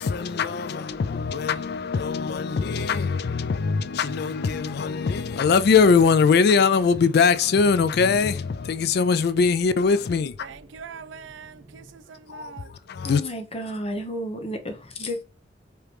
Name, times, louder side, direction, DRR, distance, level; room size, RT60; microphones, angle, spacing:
voice 1, 0.0-10.5 12.3-13.2, left 5 dB, 60° left, 0.4 m, -22 dB
sound 1, 0.9-12.8, right 1 dB, 50° right, 2.0 m, -50 dB
voice 2, 10.4-12.7, right 6 dB, 85° right, 0.4 m, -42 dB
voice 3, 13.0-15.2, equal, 30° left, 0.9 m, -32 dB
4.9 x 2.9 x 3.2 m
head